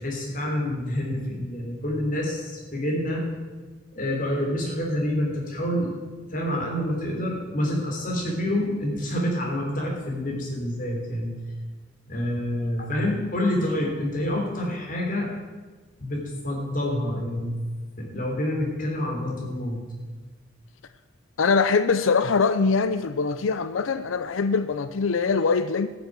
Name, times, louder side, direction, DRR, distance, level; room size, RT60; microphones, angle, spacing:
voice 1, 0.0-3.2 3.9-5.9 6.3-11.3 12.1-15.3 16.0-17.5 18.0-19.8, left 1 dB, 45° left, -1 dB, 3.3 m, -27 dB
voice 2, 21.4-25.9, left 4 dB, 85° left, 12 dB, 0.5 m, -23 dB
14.0 x 7.1 x 7.6 m, 1.3 s
head